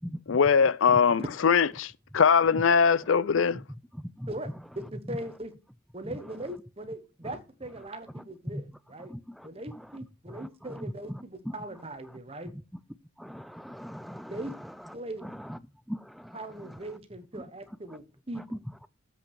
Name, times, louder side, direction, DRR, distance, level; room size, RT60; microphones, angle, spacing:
voice 1, 0.3-3.6, left 6 dB, 70° left, 0.5 m, -22 dB
voice 2, 4.3-5.5 5.9-9.1 9.4-12.5 14.3-14.5 14.9-15.3 16.3-18.6, right 1 dB, 30° right, 1.2 m, -40 dB
voice 3, 13.2-14.3 15.9-16.4, equal, ahead, 0.4 m, -39 dB
7.7 x 5.9 x 6.2 m
head